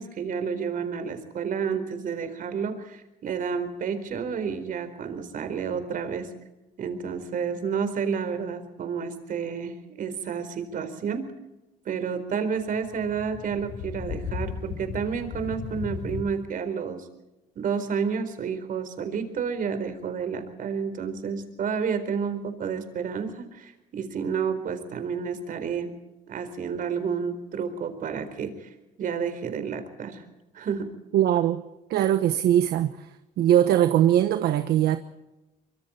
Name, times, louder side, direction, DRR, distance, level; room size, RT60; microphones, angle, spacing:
voice 1, 0.0-6.3 6.8-11.3 11.8-17.1 17.6-25.9 26.3-28.7 29.0-30.2 30.5-30.9, right 6 dB, 55° right, 4.2 m, -30 dB
sound 1, 12.5-16.2, left 6 dB, 80° left, 3.5 m, -36 dB
voice 2, 31.1-31.6 31.9-32.9 33.4-35.0, right 11 dB, 70° right, 1.1 m, -21 dB
24.5 x 24.0 x 4.4 m
cardioid pair, 110°, 17 cm